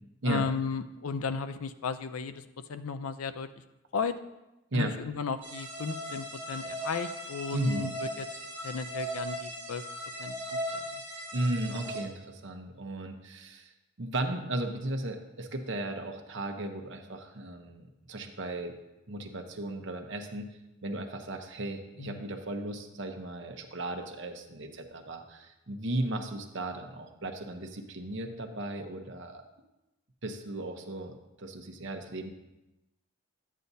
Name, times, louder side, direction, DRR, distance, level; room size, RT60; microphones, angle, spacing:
voice 1, 0.2-2.4 2.7-3.5 3.9-4.2 4.7-8.3 8.6-9.8 10.2-11.0 22.0-22.2, left 5 dB, 85° left, 11 dB, 0.5 m, -35 dB
sound 1, 5.4-12.0, equal, 15° right, 2.3 m, -38 dB
voice 2, 7.5-7.9 11.3-13.7 14.0-18.7 19.1-20.5 20.8-29.4 30.2-32.3, right 1 dB, 55° right, 4 dB, 0.9 m, -35 dB
11.0 x 8.4 x 2.7 m, 0.97 s
head